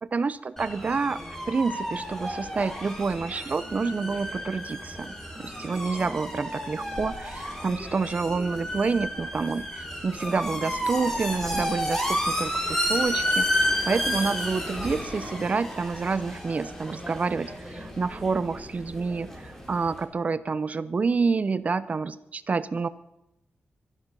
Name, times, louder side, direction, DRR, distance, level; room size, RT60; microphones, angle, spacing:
voice 1, 0.0-1.2 1.5-22.9, right 4 dB, 35° right, 15 dB, 0.7 m, -28 dB
sound 1, 0.6-20.0, equal, 10° left, 3.0 m, -31 dB
24.0 x 11.0 x 5.5 m, 0.89 s
wide cardioid pair, 145°, 4 cm